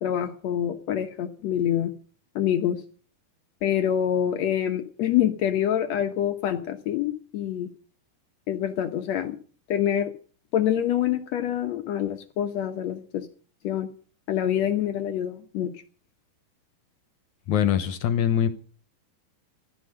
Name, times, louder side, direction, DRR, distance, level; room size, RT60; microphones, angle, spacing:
voice 1, 0.0-1.9 2.3-2.8 3.6-7.7 8.5-9.4 9.7-10.1 10.5-13.3 13.6-13.9 14.3-15.7, left 10 dB, 85° left, 7 dB, 1.5 m, -26 dB
voice 2, 17.5-18.5, left 9 dB, 70° left, 11 dB, 1.9 m, -23 dB
15.0 x 12.5 x 6.6 m, 0.43 s
omnidirectional pair, 4.5 m